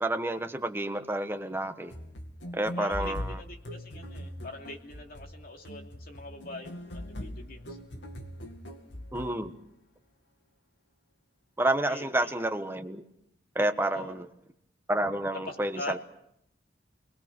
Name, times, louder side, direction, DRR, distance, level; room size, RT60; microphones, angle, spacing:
voice 1, 0.0-1.9 2.5-3.4 9.1-9.5 11.6-13.0 13.5-14.2 14.9-16.0, right 1 dB, 15° right, 7 dB, 1.3 m, -29 dB
sound 1, 1.9-9.5, left 1 dB, 85° left, 2.4 m, -41 dB
voice 2, 2.8-7.8 11.9-12.3 13.9-14.3 15.3-16.0, left 2 dB, 55° left, 3 dB, 2.8 m, -43 dB
28.5 x 20.5 x 6.2 m, 0.76 s
head